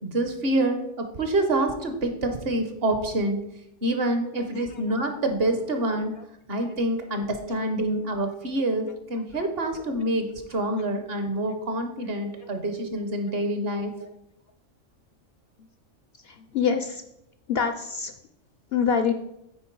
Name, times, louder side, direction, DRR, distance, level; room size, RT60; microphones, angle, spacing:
voice 1, 0.0-3.4 3.8-6.1 6.5-13.9, right 1 dB, 50° right, 6 dB, 1.1 m, -27 dB
voice 2, 16.2-17.0 17.5-18.1 18.7-19.1, left 6 dB, 65° left, 8 dB, 0.6 m, -26 dB
9.2 x 4.4 x 4.6 m, 0.83 s
omnidirectional pair, 1.3 m